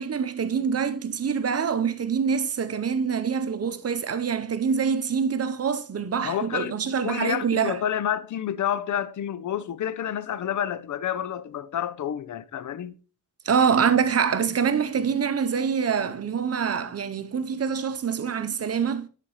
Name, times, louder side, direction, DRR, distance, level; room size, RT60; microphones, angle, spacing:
voice 1, 0.0-7.8 13.4-19.1, right 6 dB, 50° right, 0.7 m, -25 dB
voice 2, 6.2-6.8 7.0-12.9, left 10 dB, 70° left, 0.5 m, -29 dB
11.0 x 4.3 x 3.0 m
cardioid pair, 65°, 31 cm